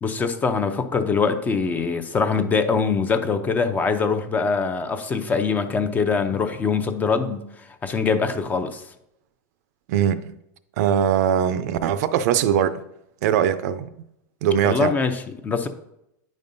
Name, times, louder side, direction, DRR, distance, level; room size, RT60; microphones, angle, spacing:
voice 1, 0.0-8.8 14.6-15.7, left 5 dB, 15° left, 0.5 m, -23 dB
voice 2, 9.9-10.3 10.8-12.8 13.2-13.9 14.4-14.9, right 9 dB, 65° right, 0.4 m, -21 dB
9.2 x 5.3 x 2.6 m
supercardioid pair, 145°, 10 cm